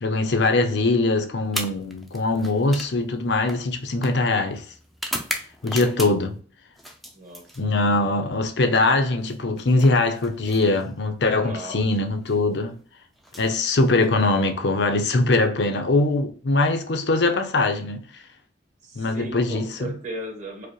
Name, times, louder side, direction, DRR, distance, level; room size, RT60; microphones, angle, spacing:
voice 1, 0.0-4.7 5.6-6.4 7.6-12.7 13.4-18.0 19.0-19.9, left 2 dB, 80° left, 0.6 m, -22 dB
sound 1, 1.4-6.4 6.8-8.0 9.2-11.0 12.1-12.4 13.2-14.3, equal, ahead, 0.4 m, -37 dB
voice 2, 7.1-7.6 11.4-11.8 18.8-20.7, right 1 dB, 40° right, 1.4 m, -36 dB
4.8 x 2.1 x 3.1 m
head